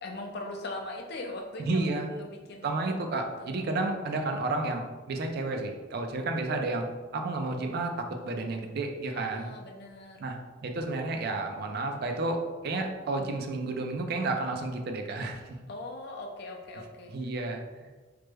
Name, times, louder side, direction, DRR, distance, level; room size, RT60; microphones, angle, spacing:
voice 1, 0.0-2.9 3.4-3.7 9.1-10.3 15.7-17.1, left 2 dB, 60° left, 2 dB, 0.5 m, -40 dB
voice 2, 1.7-2.1 2.6-6.9 7.1-9.5 10.2-10.4 10.6-15.6 17.1-17.9, right 2 dB, 55° right, 4 dB, 0.4 m, -31 dB
3.2 x 2.0 x 3.3 m, 1.3 s
head